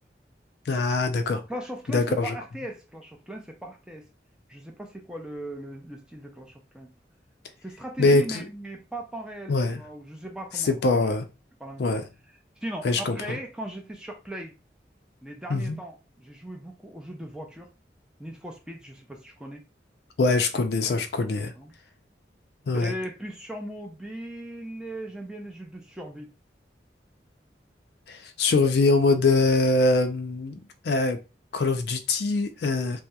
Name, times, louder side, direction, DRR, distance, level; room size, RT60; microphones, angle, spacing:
voice 1, 0.7-1.4 1.9-2.4 8.0-8.4 9.5-9.8 10.6-11.3 11.8-12.0 12.8-13.2 15.5-15.8 20.2-21.5 22.7-22.9 28.1-31.2 31.5-33.0, left 3 dB, 70° left, 0.4 m, -23 dB
voice 2, 1.5-4.1 4.5-6.9 7.6-11.0 11.6-11.9 12.6-14.5 15.2-17.7 18.2-19.6 21.6-21.7 22.7-26.3, right 1 dB, 5° right, 0.4 m, -38 dB
2.7 x 2.0 x 2.2 m
head